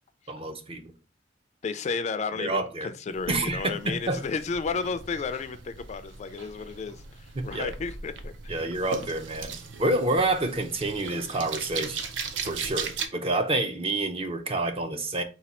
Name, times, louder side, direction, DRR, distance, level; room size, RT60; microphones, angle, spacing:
voice 1, 0.3-0.8 2.4-2.9 3.3-4.2 7.4-7.7 8.5-12.0 12.4-15.2, right 2 dB, 30° right, 0.5 m, -28 dB
voice 2, 1.6-8.7, left 5 dB, 40° left, 0.3 m, -33 dB
sound 1, 3.1-13.1, right 5 dB, 80° right, 0.5 m, -38 dB
4.1 x 2.3 x 4.2 m
head